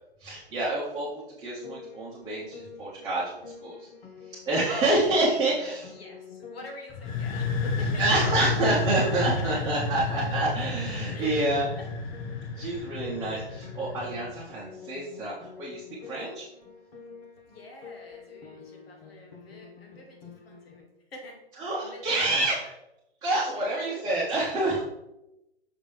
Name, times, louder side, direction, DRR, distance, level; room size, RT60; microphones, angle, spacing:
voice 1, 0.2-1.1 1.4-3.9 4.2-5.9 8.0-11.7 12.5-16.5 21.6-22.7 23.2-24.8, right 2 dB, 10° right, -8 dB, 1.2 m, -28 dB
Piano, 1.6-20.8, left 6 dB, 55° left, 1.6 m, -48 dB
voice 2, 5.9-8.2 9.2-9.4 11.1-11.4 12.3-12.5 17.5-21.4 21.8-22.4 23.4-24.2, left 2 dB, 70° left, 0 dB, 2.2 m, -46 dB
sound 1, 6.9-14.5, left 3 dB, 15° left, 0.4 m, -31 dB
6.0 x 5.1 x 3.5 m, 0.91 s
hypercardioid pair, 130°, 31 cm